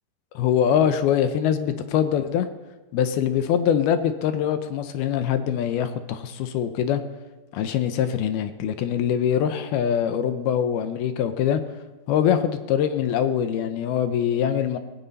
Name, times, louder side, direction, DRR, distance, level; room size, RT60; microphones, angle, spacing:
voice 1, 0.3-2.5 2.9-7.0 7.5-11.6 12.1-14.8, left 9 dB, 75° left, 9 dB, 2.5 m, -23 dB
20.5 x 16.0 x 4.1 m, 1.2 s
omnidirectional pair, 4.9 m